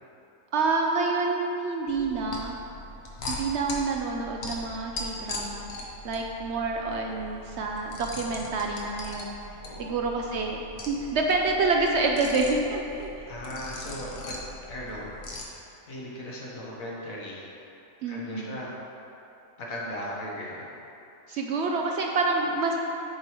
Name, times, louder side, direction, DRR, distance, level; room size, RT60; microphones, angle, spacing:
voice 1, 0.5-2.6 3.3-5.6 6.0-9.3 9.8-13.1 18.0-18.6 21.3-22.8, right 3 dB, 65° right, 1 dB, 0.7 m, -27 dB
sound 1, 1.9-15.4, left 2 dB, 55° left, 1.0 m, -40 dB
voice 2, 13.3-15.1 15.3-17.4 18.0-18.7 19.6-20.6 21.3-21.4, left 1 dB, 80° left, -4 dB, 1.6 m, -38 dB
9.3 x 4.8 x 3.0 m, 2.8 s
omnidirectional pair, 1.4 m